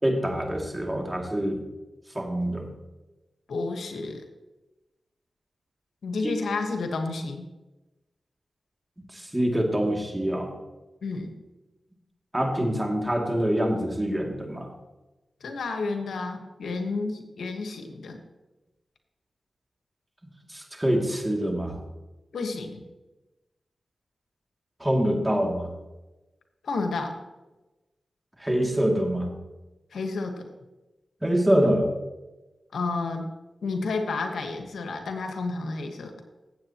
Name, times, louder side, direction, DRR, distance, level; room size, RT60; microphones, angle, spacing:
voice 1, 0.0-1.6 2.1-2.6 6.2-6.3 9.1-10.5 12.3-14.7 20.5-21.8 24.8-25.7 28.4-29.3 31.2-31.9, equal, 15° right, 1 dB, 2.4 m, -25 dB
voice 2, 3.5-4.2 6.0-7.5 11.0-11.3 15.4-18.2 22.3-22.9 26.6-27.1 29.9-30.5 32.7-33.3 33.6-36.1, left 3 dB, 85° left, 4 dB, 1.2 m, -31 dB
16.5 x 7.9 x 2.9 m, 1.1 s
cardioid pair, 45°, 0 cm